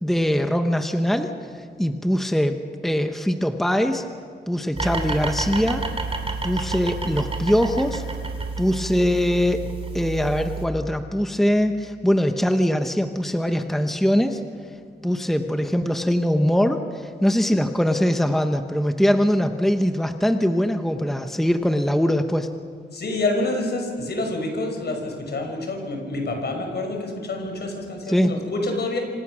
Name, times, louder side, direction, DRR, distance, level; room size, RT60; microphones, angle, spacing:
voice 1, 0.0-2.6 2.8-4.0 4.5-5.8 6.4-8.0 8.6-9.6 9.9-14.4 15.0-22.5 28.1-28.3, equal, ahead, 6 dB, 1.0 m, -22 dB
sound 1, 4.7-10.7, right 3 dB, 30° right, 3.1 m, -30 dB
voice 2, 22.9-29.0, left 2 dB, 65° left, 3 dB, 5.4 m, -27 dB
27.0 x 26.5 x 6.3 m, 2.1 s
wide cardioid pair, 135°, 18 cm